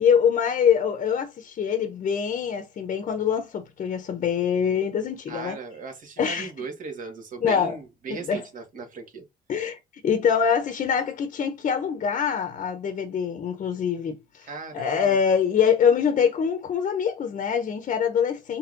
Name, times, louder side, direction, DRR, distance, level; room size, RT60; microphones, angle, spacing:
voice 1, 0.0-5.6 6.2-6.5 7.4-7.7 8.1-8.4 9.5-9.8 10.0-14.5 14.7-18.6, left 7 dB, 45° left, 0.8 m, -24 dB
voice 2, 5.3-9.3 14.4-15.2, right 4 dB, 50° right, 1.8 m, -37 dB
4.4 x 3.7 x 2.6 m
cardioid pair, 110°, 17 cm